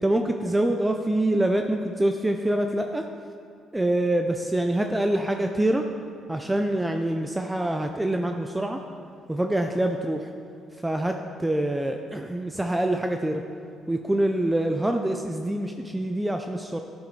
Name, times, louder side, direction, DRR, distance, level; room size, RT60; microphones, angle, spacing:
voice 1, 0.0-3.1 3.7-5.9 6.3-8.8 9.3-10.3 10.8-13.4 13.9-16.8, right 1 dB, 10° right, 4 dB, 0.4 m, -25 dB
12.0 x 6.2 x 3.2 m, 2.4 s
cardioid pair, 85°, 0 cm